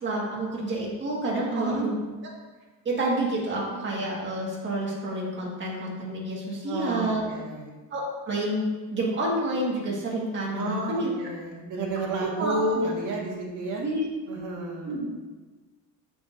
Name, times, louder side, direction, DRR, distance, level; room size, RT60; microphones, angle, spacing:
voice 1, 0.0-2.0 2.8-7.3 7.9-11.1 12.2-12.8 13.8-14.1 14.8-15.1, right 1 dB, 30° right, -4 dB, 1.6 m, -29 dB
voice 2, 1.5-1.9 6.6-7.8 10.5-13.8 14.3-15.0, right 2 dB, 55° right, -2 dB, 1.6 m, -31 dB
7.0 x 6.8 x 2.5 m, 1.3 s
cardioid pair, 165°, 36 cm